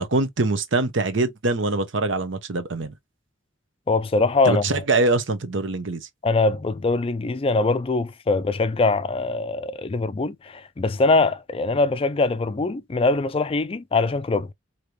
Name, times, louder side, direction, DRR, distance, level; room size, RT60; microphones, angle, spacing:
voice 1, 0.0-2.9 4.4-6.1, right 2 dB, 75° right, 0.9 m, -23 dB
voice 2, 3.9-4.8 6.2-14.5, left 3 dB, 30° left, 0.4 m, -22 dB
4.8 x 2.9 x 2.9 m
head